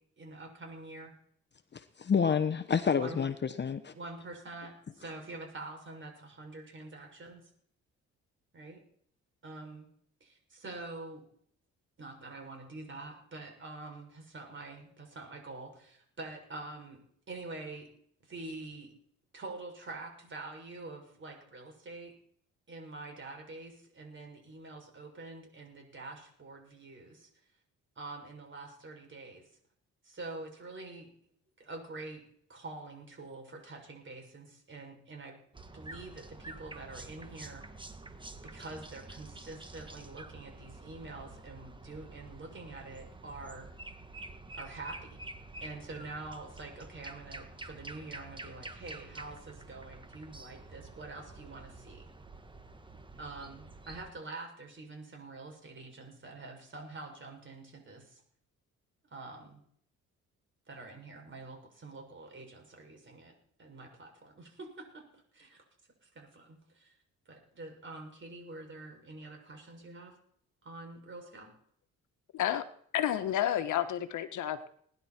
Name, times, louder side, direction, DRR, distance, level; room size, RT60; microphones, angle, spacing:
voice 1, 0.2-1.1 3.0-3.2 3.9-7.4 8.5-8.8 9.4-9.9 10.2-11.2 12.0-17.0 17.3-17.9 18.3-18.9 19.3-22.1 22.7-27.3 28.0-29.5 30.0-31.1 31.6-32.2 32.5-35.4 35.7-37.6 38.4-43.7 44.6-45.2 45.6-52.1 53.2-58.2 59.1-59.6 60.7-63.3 63.6-65.0 65.3-65.6 66.0-66.9 67.3-70.1 70.6-71.5, right 2 dB, 40° right, 2 dB, 7.0 m, -46 dB
voice 2, 1.7-3.9, left 6 dB, 35° left, 9 dB, 1.0 m, -29 dB
sound 1, 35.5-54.1, right 2 dB, 15° right, 1.7 m, -48 dB
voice 3, 72.3-72.6 72.9-74.7, left 11 dB, 75° left, 10 dB, 1.4 m, -30 dB
20.0 x 11.0 x 4.5 m, 0.62 s
cardioid pair, 90°, 30 cm